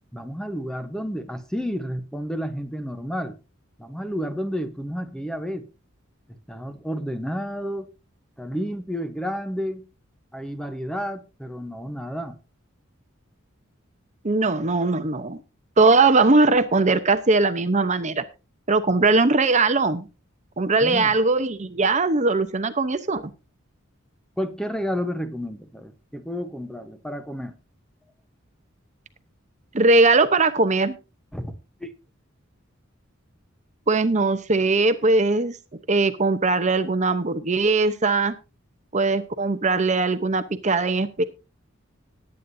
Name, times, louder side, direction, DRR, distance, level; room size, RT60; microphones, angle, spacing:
voice 1, 0.1-3.4 3.8-5.7 6.5-7.9 8.4-9.9 10.3-12.4 20.8-21.2 24.4-27.6 31.3-31.5 31.8-31.9, equal, 5° left, 1.0 m, -31 dB
voice 2, 14.2-15.4 15.8-18.2 18.7-20.1 20.6-23.2 29.7-31.0 33.9-35.6 35.9-38.3 38.9-41.2, right 3 dB, 35° right, 0.9 m, -20 dB
19.5 x 9.3 x 2.7 m
head